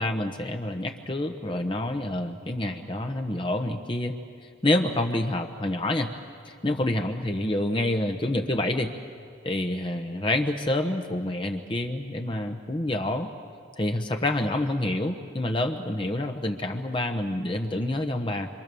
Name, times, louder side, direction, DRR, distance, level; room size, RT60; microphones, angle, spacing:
voice 1, 0.0-4.2 4.6-6.1 6.4-8.9 9.4-13.3 13.8-18.5, left 1 dB, 25° left, 4 dB, 1.1 m, -27 dB
26.5 x 26.5 x 7.0 m, 2.3 s
head